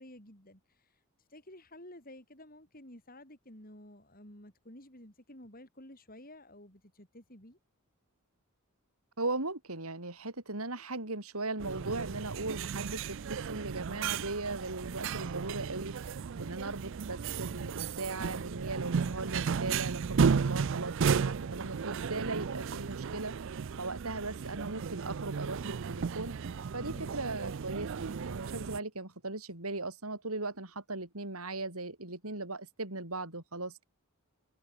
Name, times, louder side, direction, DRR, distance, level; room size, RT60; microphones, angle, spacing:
voice 1, 0.0-7.6 26.9-27.1, left 1 dB, 40° left, 7.8 m, -52 dB
voice 2, 9.2-26.3 26.7-33.8, right 2 dB, 80° right, 5.1 m, -38 dB
sound 1, 11.6-28.8, right 6 dB, 55° right, 0.4 m, -34 dB
head